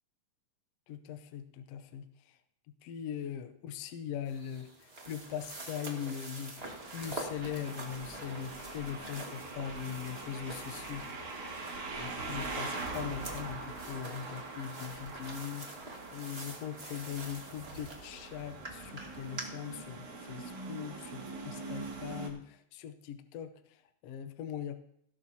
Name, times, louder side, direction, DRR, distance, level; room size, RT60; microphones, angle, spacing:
voice 1, 0.9-2.4 2.8-6.5 6.9-11.0 12.0-24.8, left 8 dB, 70° left, 9 dB, 1.7 m, -41 dB
sound 1, 4.3-19.4, right 2 dB, 25° right, 1.6 m, -46 dB
sound 2, 6.6-22.3, right 3 dB, 80° right, 3.8 m, -43 dB
sound 3, 7.7-12.8, left 2 dB, 40° left, 2.2 m, -55 dB
17.5 x 12.0 x 2.8 m, 0.70 s
omnidirectional pair, 3.3 m